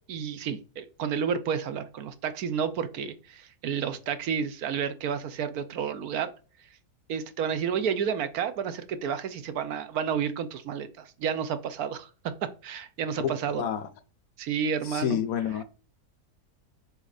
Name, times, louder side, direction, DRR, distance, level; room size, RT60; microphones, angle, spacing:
voice 1, 0.1-6.3 7.1-13.6 14.4-15.2, right 7 dB, 70° right, 1.2 m, -31 dB
voice 2, 13.2-13.9 14.9-15.6, left 9 dB, 70° left, 0.9 m, -29 dB
6.8 x 4.4 x 4.0 m
omnidirectional pair, 1.7 m